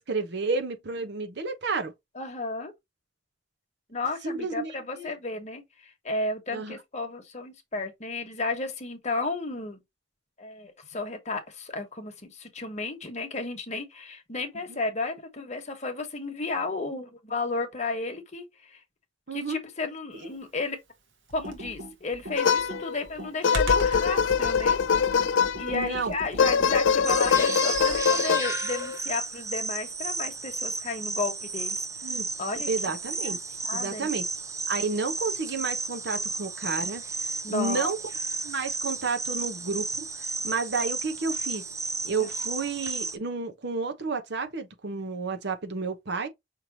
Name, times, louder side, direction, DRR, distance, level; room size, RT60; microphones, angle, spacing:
voice 1, 0.0-1.9 4.2-5.1 6.5-6.8 14.7-14.8 19.3-19.6 20.2-20.3 25.7-26.1 32.0-32.2 32.7-33.4 33.7-34.2 34.7-37.0 37.5-38.0 38.4-39.9 40.4-41.6 42.0-46.3, right 4 dB, 65° right, 1.0 m, -31 dB
voice 2, 2.1-2.7 3.9-9.8 10.4-18.8 19.3-20.8 21.3-24.8 25.6-31.8 32.1-32.7 33.2-33.4 33.6-34.1 37.4-37.9 42.2-42.3, left 3 dB, 40° left, 1.2 m, -33 dB
Computer keyboard, 21.3-28.2, equal, 90° right, 1.4 m, -36 dB
sound 1, 22.4-23.0 23.4-25.8 26.4-29.0, left 6 dB, 80° left, 0.4 m, -23 dB
sound 2, 27.0-43.2, right 4 dB, 15° right, 0.5 m, -33 dB
5.7 x 3.2 x 2.8 m
head